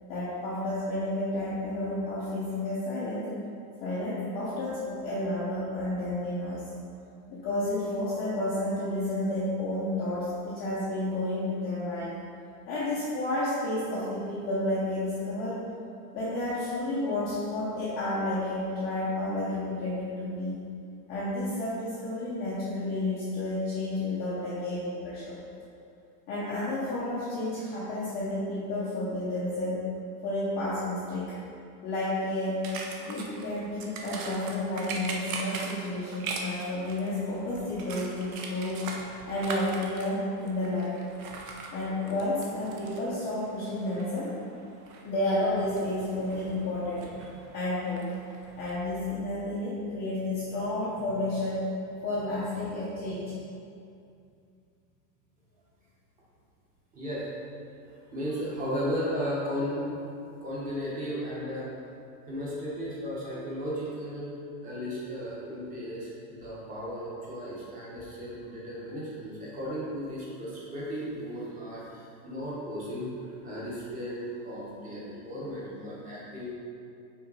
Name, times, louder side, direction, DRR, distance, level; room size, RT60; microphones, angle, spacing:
voice 1, 0.1-3.3 3.8-6.7 7.3-12.1 12.7-15.6 16.1-20.6 21.1-25.4 26.3-29.8 30.2-31.4 31.8-32.6 33.0-40.9 41.7-44.3 45.0-47.1 47.5-48.1 48.6-51.7 52.0-53.4, left 1 dB, 20° left, -10 dB, 0.5 m, -31 dB
sound 1, 32.6-48.8, right 3 dB, 55° right, 0.9 m, -42 dB
voice 2, 56.9-57.3 58.1-59.9 60.4-61.7 62.3-64.3 64.6-76.5, equal, 15° right, -7 dB, 1.0 m, -35 dB
5.8 x 4.4 x 4.0 m, 2.5 s
supercardioid pair, 165°, 49 cm